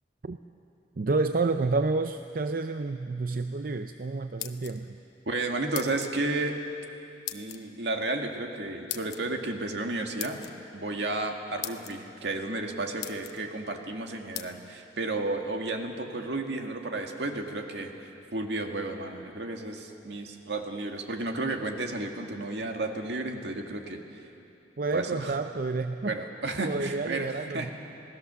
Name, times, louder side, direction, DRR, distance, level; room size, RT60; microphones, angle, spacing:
voice 1, 1.0-5.0 24.8-26.1 26.6-27.7, right 3 dB, 50° right, 8 dB, 0.5 m, -29 dB
sound 1, 4.2-5.0 5.7-6.1 7.3-7.6 8.9-9.2 10.2-10.5 11.2-11.3 11.6-11.9 12.6-12.7 13.0-13.4 14.3-14.5, left 13 dB, 70° left, 1.0 m, -37 dB
voice 2, 5.3-6.6 7.3-10.4 10.7-17.9 18.3-24.0 24.9-25.3 26.1-27.7, right 2 dB, 75° right, 3 dB, 2.0 m, -32 dB
26.5 x 18.0 x 6.9 m, 2.7 s
head